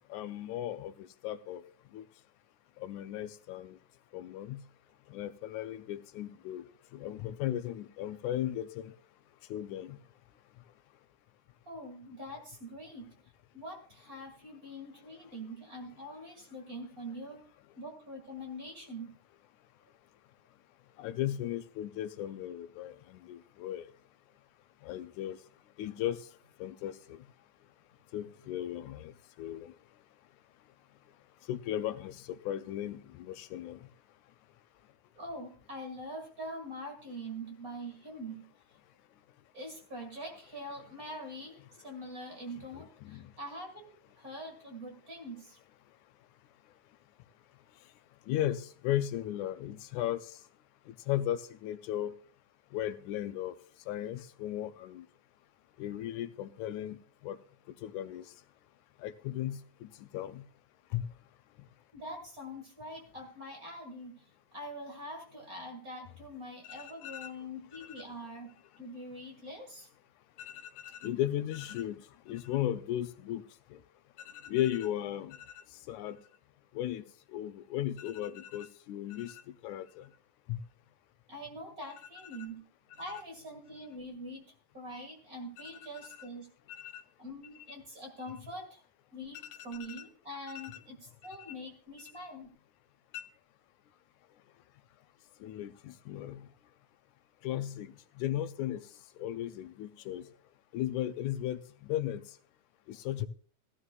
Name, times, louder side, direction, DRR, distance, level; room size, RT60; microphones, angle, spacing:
voice 1, 0.1-1.6 1.9-2.0 2.8-3.8 4.1-4.6 5.1-6.6 6.9-8.9 9.5-10.0 21.0-23.9 24.8-25.4 25.8-26.2 26.6-27.2 28.1-29.1 29.4-29.7 31.5-33.8 43.0-43.3 48.3-50.2 50.9-52.1 52.7-53.5 53.9-55.0 55.8-57.0 57.2-57.4 57.8-58.2 59.0-60.4 60.9-61.1 66.6-67.3 67.7-68.0 70.4-72.0 72.3-73.4 73.7-73.8 74.4-76.2 76.8-77.0 77.3-80.1 80.5-80.6 86.0-86.1 86.7-87.0 89.9-90.0 90.5-90.8 93.1-93.2 95.4-96.4 97.4-97.9 98.2-98.8 99.2-100.2 100.7-102.2 102.9-103.3, left 12 dB, 80° left, 11 dB, 2.0 m, -36 dB
voice 2, 11.7-13.2 13.5-17.5 17.8-19.2 35.2-38.5 39.5-45.6 61.9-64.3 64.5-69.9 81.3-82.6 83.0-86.5 87.2-88.8 89.1-92.6, equal, 35° right, 1 dB, 2.1 m, -44 dB
15.5 x 13.0 x 2.3 m, 0.42 s
omnidirectional pair, 3.4 m